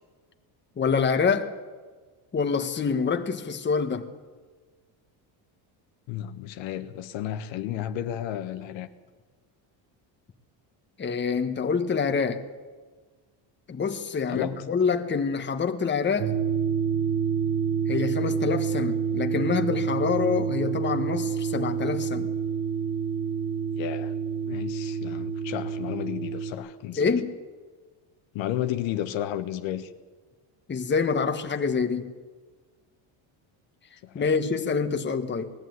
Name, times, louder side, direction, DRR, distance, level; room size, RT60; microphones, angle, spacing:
voice 1, 0.8-1.5 2.3-4.1 11.0-12.4 13.7-16.3 17.9-22.3 26.9-27.3 30.7-32.1 34.1-35.5, left 5 dB, 25° left, 1.4 m, -26 dB
voice 2, 6.1-8.9 14.3-14.6 23.8-24.1 24.4-27.2 28.3-29.9 34.0-34.3, left 11 dB, 70° left, 1.3 m, -32 dB
sound 1, 16.2-26.5, right 7 dB, 85° right, 2.1 m, -28 dB
20.0 x 14.5 x 9.4 m
cardioid pair, 130°, 47 cm